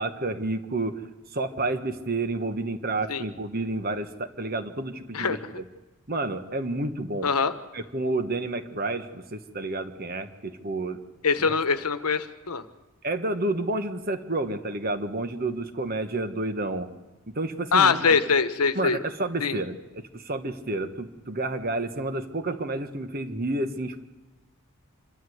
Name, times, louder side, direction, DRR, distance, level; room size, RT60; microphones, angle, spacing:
voice 1, 0.0-5.6 6.1-7.3 7.7-11.0 13.0-16.9 17.3-18.1 18.7-24.0, right 2 dB, 40° right, 8 dB, 1.2 m, -30 dB
voice 2, 7.2-7.5 11.2-12.6 17.7-19.0 19.4-19.6, left 5 dB, 85° left, 10 dB, 1.2 m, -23 dB
26.5 x 12.5 x 7.9 m, 1.1 s
head